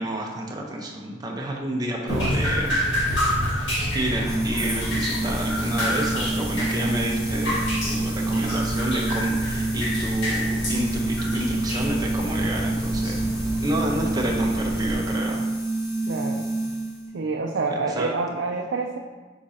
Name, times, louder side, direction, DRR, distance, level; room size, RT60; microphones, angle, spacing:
voice 1, 0.0-2.7 3.7-15.4 17.9-18.1, right 1 dB, 20° right, -1 dB, 0.8 m, -30 dB
Drip, 2.1-14.9, equal, 65° left, 1.9 m, -28 dB
sound 1, 4.2-17.1, right 2 dB, 20° left, 1.4 m, -28 dB
voice 2, 16.1-16.5 17.1-19.0, right 3 dB, 70° right, 1 dB, 0.5 m, -27 dB
7.7 x 5.0 x 2.8 m, 1.3 s
head